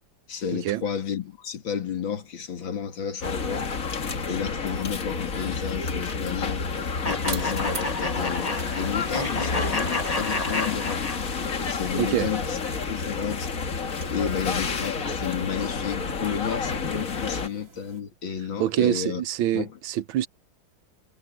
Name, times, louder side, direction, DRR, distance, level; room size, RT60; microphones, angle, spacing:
voice 1, 0.3-3.7 4.3-6.7 7.0-11.0 11.7-12.6 12.9-13.6 14.1-19.2 19.5-19.8, left 7 dB, 75° left, 2.7 m, -32 dB
sound 1, 3.2-17.5, left 4 dB, 45° left, 1.9 m, -30 dB
sound 2, 6.3-18.0, right 4 dB, 40° right, 2.5 m, -45 dB
sound 3, 7.0-11.6, left 2 dB, 20° left, 1.6 m, -30 dB
voice 2, 12.0-12.3 18.6-20.3, right 12 dB, 80° right, 1.5 m, -25 dB
omnidirectional pair, 2.1 m